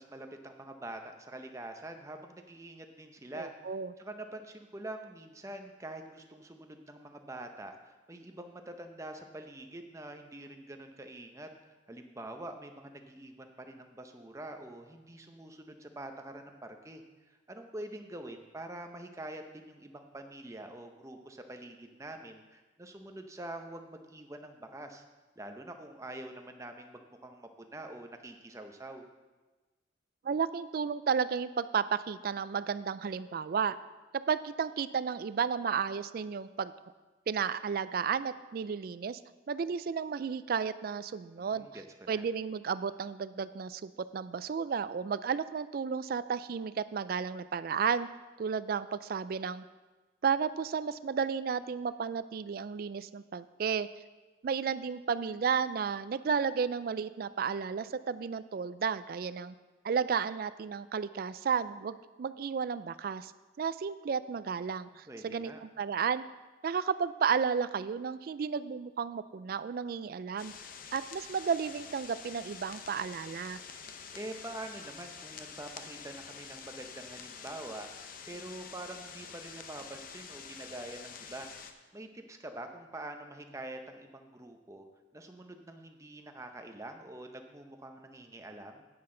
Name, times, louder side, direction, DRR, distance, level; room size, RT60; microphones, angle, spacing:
voice 1, 0.0-25.0 25.4-29.1 41.4-42.3 65.1-65.6 74.1-81.5 81.9-84.9 85.1-88.9, right 1 dB, 15° right, 5 dB, 0.7 m, -45 dB
voice 2, 3.4-3.9 30.2-33.8 34.3-36.7 37.3-39.2 39.5-41.7 42.1-48.1 48.4-49.6 50.2-53.9 54.4-59.5 59.8-63.3 63.6-66.2 66.6-70.5 70.9-73.6, right 6 dB, 50° right, 15 dB, 0.3 m, -33 dB
sound 1, 70.4-81.7, left 6 dB, 50° left, 0.6 m, -47 dB
9.9 x 9.5 x 3.8 m, 1.2 s
head